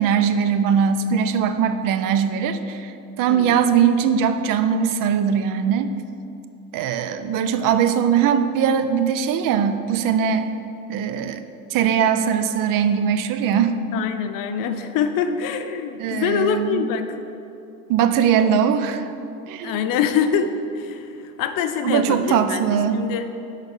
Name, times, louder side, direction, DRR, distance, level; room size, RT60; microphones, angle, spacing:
voice 1, 0.0-5.9 6.7-10.5 10.9-11.4 11.7-13.8 16.0-16.8 17.9-19.1 19.5-19.8 21.8-23.0, right 7 dB, 60° right, 10 dB, 0.6 m, -20 dB
voice 2, 3.3-3.9 13.9-17.1 19.6-20.5 20.8-23.3, left 7 dB, 60° left, 8 dB, 0.7 m, -25 dB
8.0 x 4.1 x 5.5 m, 2.7 s
supercardioid pair, 95°, 38 cm